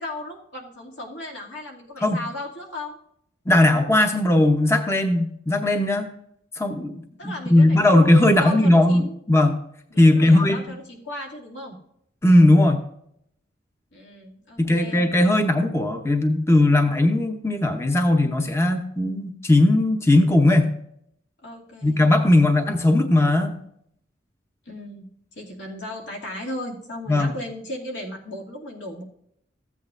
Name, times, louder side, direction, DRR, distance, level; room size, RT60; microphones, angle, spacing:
voice 1, 0.0-3.0 7.2-9.2 9.9-11.8 13.9-15.0 21.4-22.7 24.7-25.1 25.3-29.0, left 1 dB, 80° left, -2 dB, 2.4 m, -36 dB
voice 2, 3.5-6.1 6.6-9.5 10.0-10.7 12.2-12.8 14.6-20.7 21.8-23.6 27.1-27.3, left 1 dB, 15° left, 5 dB, 0.7 m, -18 dB
14.5 x 8.5 x 2.5 m, 0.70 s
head